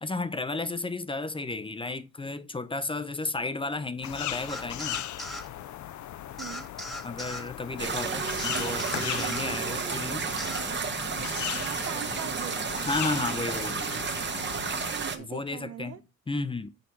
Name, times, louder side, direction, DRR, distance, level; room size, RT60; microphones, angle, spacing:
voice 1, 0.0-5.0 7.0-10.2 12.8-14.1 15.2-16.7, left 3 dB, 15° left, 0.6 m, -33 dB
sound 1, 4.0-14.9, left 12 dB, 70° left, 0.7 m, -38 dB
sound 2, 4.5-5.5 6.4-7.5 8.4-9.5 10.4-10.7, left 1 dB, ahead, 1.2 m, -38 dB
sound 3, 7.8-15.2, right 5 dB, 35° right, 1.1 m, -32 dB
voice 2, 11.6-12.9 14.9-16.0, right 10 dB, 55° right, 0.6 m, -41 dB
6.4 x 5.4 x 4.5 m
cardioid pair, 90°, 30 cm